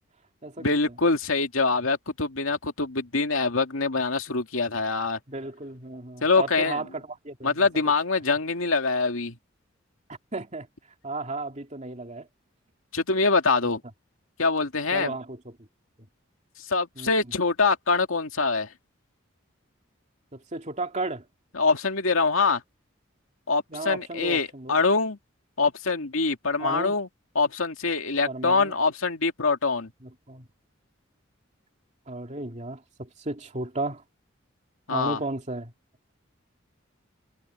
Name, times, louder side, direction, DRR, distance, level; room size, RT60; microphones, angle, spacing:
voice 1, 0.6-5.2 6.2-6.8 7.4-9.4 12.9-13.8 14.4-15.1 16.6-18.7 21.5-22.6 23.5-25.2 25.6-27.1 27.3-29.9 34.9-35.2, left 4 dB, 90° left, 2.4 m, -24 dB
voice 2, 5.3-7.7 10.3-10.7 11.0-12.3 14.9-15.5 17.0-17.1 20.3-21.2 23.7-24.8 26.6-26.9 28.3-28.7 30.0-30.4 32.1-34.0 34.9-35.7, right 2 dB, 35° right, 2.7 m, -34 dB
head